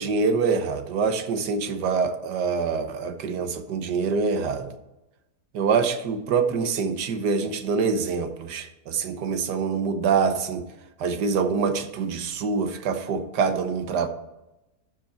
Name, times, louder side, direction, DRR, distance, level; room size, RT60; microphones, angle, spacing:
voice 1, 0.0-4.7 5.5-10.7 11.0-14.1, right 5 dB, 85° right, 8 dB, 1.5 m, -25 dB
13.5 x 5.0 x 4.4 m, 0.96 s
omnidirectional pair, 1.8 m